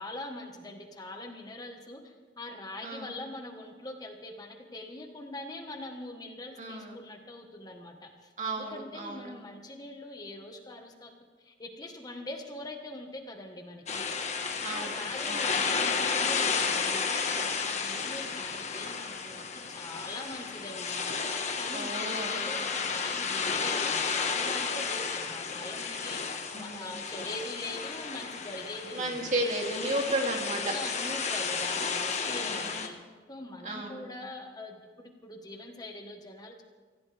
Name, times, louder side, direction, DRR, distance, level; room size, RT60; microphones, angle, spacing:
voice 1, 0.0-11.1 11.4-14.1 14.7-21.0 21.5-29.3 30.7-33.0 33.3-36.6, left 2 dB, 20° left, 3 dB, 1.4 m, -43 dB
voice 2, 6.6-7.0 8.4-9.3 14.6-15.0 15.3-15.5 21.7-22.5 26.5-27.0 28.9-30.7 32.4-32.7 33.6-34.0, right 1 dB, 40° right, 0 dB, 2.7 m, -33 dB
sound 1, 13.9-32.9, left 5 dB, 40° left, 1.4 m, -32 dB
25.0 x 16.5 x 3.4 m, 1.5 s
head